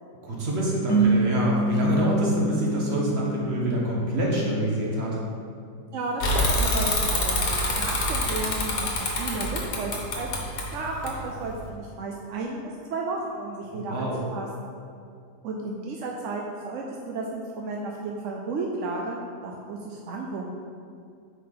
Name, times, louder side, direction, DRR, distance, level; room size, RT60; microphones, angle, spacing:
voice 1, 0.2-5.2 13.7-14.2, right 1 dB, 40° right, -3 dB, 1.5 m, -26 dB
sound 1, 0.9-4.2, right 2 dB, 15° left, 1.1 m, -25 dB
voice 2, 5.9-10.3 10.7-14.5 15.4-20.5, right 3 dB, 65° right, -1 dB, 0.8 m, -33 dB
Bicycle / Mechanisms, 6.2-11.7, left 1 dB, 75° left, 1.7 m, -26 dB
8.1 x 4.7 x 4.0 m, 2.3 s
omnidirectional pair, 1.8 m